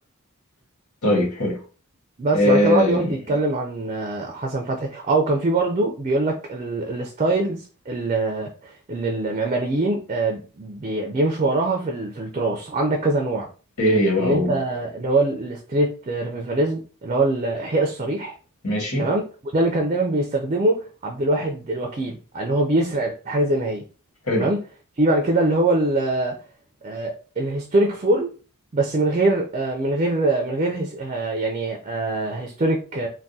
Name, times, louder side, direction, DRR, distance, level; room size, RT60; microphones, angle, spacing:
voice 1, 1.0-1.6 2.3-3.1 13.8-14.6 18.6-19.1 24.3-24.5, left 1 dB, 90° left, 1.4 m, -20 dB
voice 2, 2.2-13.5 14.2-18.3 19.0-23.8 24.3-24.6 25.0-26.4 26.8-28.3 28.7-33.1, right 2 dB, 30° right, 0.4 m, -23 dB
3.4 x 2.2 x 2.7 m
head